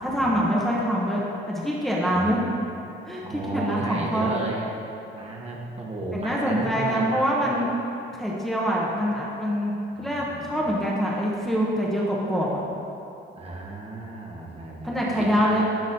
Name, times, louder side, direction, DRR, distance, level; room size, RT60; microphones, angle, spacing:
voice 1, 0.0-2.4 3.1-4.3 6.1-7.7 8.2-9.7 10.0-12.6 14.8-15.6, equal, ahead, -5 dB, 0.9 m, -25 dB
voice 2, 2.1-2.6 3.2-4.7 5.1-7.7 10.0-10.7 13.3-15.6, right 2 dB, 30° right, -3 dB, 1.1 m, -34 dB
12.0 x 4.0 x 2.7 m, 2.8 s
cardioid pair, 90°, 20 cm